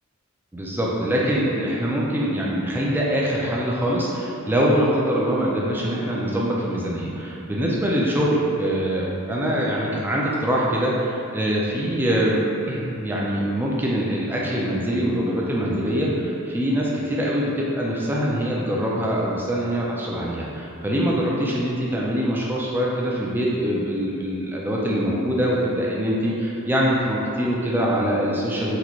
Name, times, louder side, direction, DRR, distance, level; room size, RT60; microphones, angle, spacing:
voice 1, 0.5-12.4 12.7-28.8, equal, 10° right, -4 dB, 0.3 m, -23 dB
3.8 x 2.1 x 3.0 m, 2.8 s
head